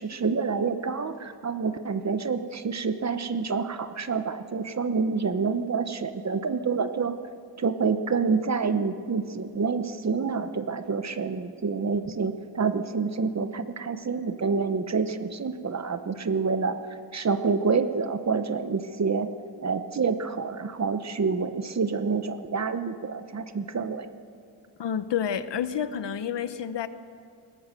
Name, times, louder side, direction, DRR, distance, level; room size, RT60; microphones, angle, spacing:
voice 1, 0.0-7.1 7.6-16.8 17.1-19.3 19.6-24.1, right 5 dB, 40° right, 10 dB, 1.0 m, -27 dB
voice 2, 24.8-26.9, left 8 dB, 75° left, 12 dB, 1.0 m, -29 dB
20.5 x 17.5 x 7.7 m, 2.3 s
wide cardioid pair, 140°, 43 cm